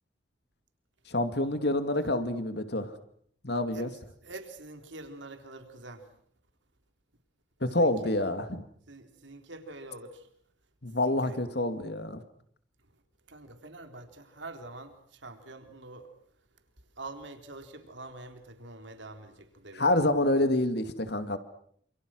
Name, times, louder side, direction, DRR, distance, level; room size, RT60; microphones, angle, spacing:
voice 1, 1.1-2.9 3.4-3.9 7.6-8.6 10.8-12.2 19.7-21.4, left 1 dB, 55° left, 10 dB, 2.4 m, -27 dB
voice 2, 4.2-6.0 7.7-7.9 8.9-10.2 11.1-11.4 13.3-16.1 17.0-19.8, right 2 dB, 70° right, 6 dB, 3.8 m, -45 dB
28.5 x 28.0 x 6.3 m, 0.63 s
head